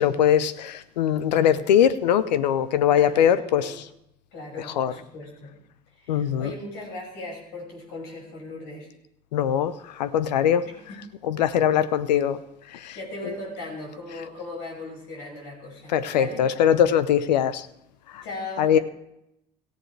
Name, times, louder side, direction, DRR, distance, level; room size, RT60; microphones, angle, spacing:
voice 1, 0.0-3.9 4.6-4.9 6.1-6.5 9.3-12.4 12.7-13.4 15.9-17.7 18.1-18.2 18.6-18.8, left 9 dB, 85° left, 15 dB, 0.7 m, -22 dB
voice 2, 2.9-3.7 4.3-5.5 6.0-8.9 10.9-11.1 12.9-16.4 18.2-18.8, left 2 dB, 70° left, -1 dB, 6.0 m, -38 dB
17.5 x 14.0 x 3.3 m, 0.81 s
hypercardioid pair, 65°, 21 cm